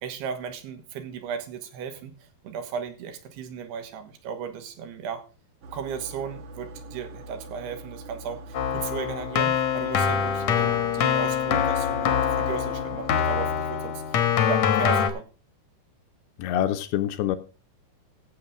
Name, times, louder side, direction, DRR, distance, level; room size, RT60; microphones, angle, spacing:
voice 1, 0.0-2.1 2.4-5.2 5.7-14.2 14.5-15.3, right 7 dB, 80° right, 8 dB, 3.3 m, -35 dB
sound 1, 5.6-13.6, right 1 dB, 55° right, 3.3 m, -43 dB
Keyboard (musical), 8.5-15.1, left 8 dB, 65° left, 1.8 m, -24 dB
voice 2, 16.4-17.4, left 11 dB, 80° left, 9 dB, 2.6 m, -25 dB
14.5 x 8.0 x 3.7 m, 0.35 s
omnidirectional pair, 4.8 m